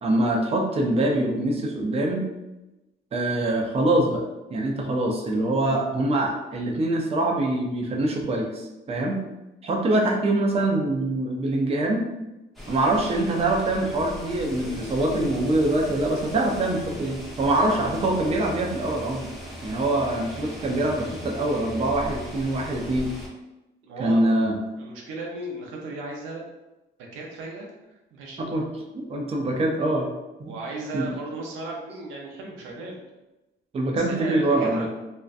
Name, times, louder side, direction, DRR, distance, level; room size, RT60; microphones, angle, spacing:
voice 1, 0.0-2.2 3.1-4.2 4.5-9.2 9.6-12.0 12.7-19.3 19.6-23.1 24.0-24.6 28.4-28.6 28.9-30.1 30.4-30.6 30.9-31.1 33.7-34.9, right 1 dB, 30° right, 0 dB, 0.5 m, -24 dB
sound 1, 12.5-23.3, equal, ahead, 0.7 m, -39 dB
voice 2, 23.8-24.2 24.8-26.5 27.1-27.7 28.1-28.5 29.3-29.6 30.4-33.0 33.9-34.9, right 2 dB, 90° right, -1 dB, 0.6 m, -36 dB
2.5 x 2.1 x 2.4 m, 1.0 s
cardioid pair, 90°, 20 cm